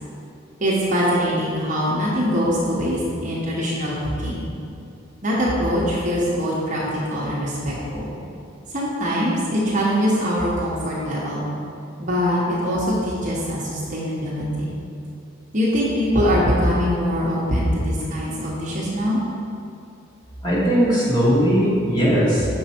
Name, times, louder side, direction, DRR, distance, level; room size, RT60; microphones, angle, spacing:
voice 1, 0.6-4.5 5.2-8.1 8.7-11.4 12.0-14.7 15.5-19.2, equal, 40° right, -6 dB, 0.9 m, -22 dB
voice 2, 20.4-22.5, equal, 20° left, -8 dB, 1.5 m, -18 dB
6.1 x 4.6 x 4.3 m, 2.6 s
head